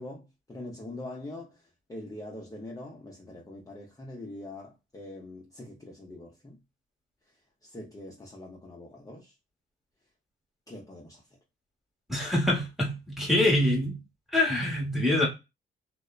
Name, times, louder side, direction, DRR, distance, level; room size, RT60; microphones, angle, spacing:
voice 1, 0.0-1.6 1.9-6.6 7.6-9.3 10.7-11.2, left 1 dB, 15° left, 0.7 m, -43 dB
voice 2, 12.1-14.0 14.3-15.3, left 1 dB, ahead, 1.2 m, -25 dB
2.7 x 2.1 x 2.3 m
cardioid pair, 90°, 20 cm